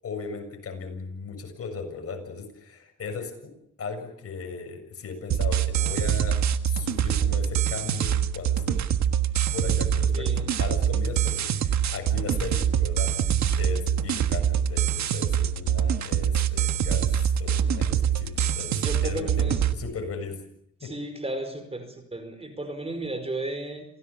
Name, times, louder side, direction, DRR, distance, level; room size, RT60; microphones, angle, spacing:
voice 1, 0.0-3.5 3.8-8.8 9.5-20.4 20.8-20.9, left 5 dB, 50° left, 5 dB, 7.3 m, -37 dB
sound 1, 5.3-19.7, right 9 dB, 65° right, 1.5 m, -25 dB
voice 2, 10.1-10.5 18.7-19.7 20.8-23.9, right 2 dB, 20° right, 9 dB, 4.9 m, -34 dB
27.5 x 17.5 x 7.4 m, 0.73 s
cardioid pair, 90°, 30 cm